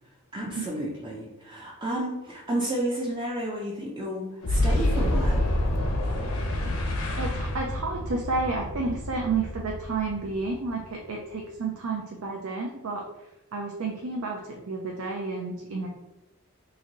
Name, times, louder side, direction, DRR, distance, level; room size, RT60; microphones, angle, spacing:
voice 1, 0.3-5.5, right 1 dB, 20° right, -3 dB, 0.4 m, -31 dB
Boom, 4.4-11.0, left 1 dB, 80° left, 0.8 m, -28 dB
voice 2, 6.6-13.0 13.5-15.9, right 3 dB, 80° right, 0 dB, 0.5 m, -31 dB
3.1 x 2.6 x 3.8 m, 0.95 s
head